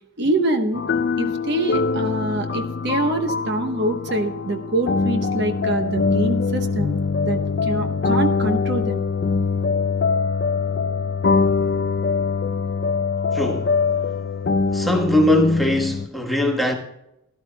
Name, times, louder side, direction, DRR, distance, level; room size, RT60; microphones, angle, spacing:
voice 1, 0.2-0.8 1.2-7.0 7.2-9.0, right 1 dB, 55° right, 1.0 m, -25 dB
sound 1, 0.7-16.1, left 4 dB, 50° left, 0.4 m, -23 dB
voice 2, 13.3-13.7 14.7-16.7, left 1 dB, ahead, 1.2 m, -20 dB
18.0 x 12.0 x 2.2 m
head